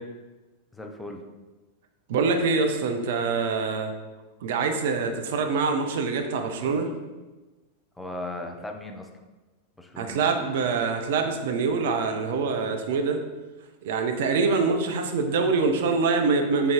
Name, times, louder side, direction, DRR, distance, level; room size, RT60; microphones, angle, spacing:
voice 1, 0.7-1.2 8.0-9.2 9.8-10.2, left 1 dB, 5° left, 3 dB, 0.5 m, -37 dB
voice 2, 2.1-3.9 4.4-6.9 10.0-13.2 13.8-16.7, right 4 dB, 55° right, 5 dB, 0.4 m, -25 dB
3.8 x 3.6 x 2.8 m, 1.2 s
figure-of-eight pair, 90°, 0 cm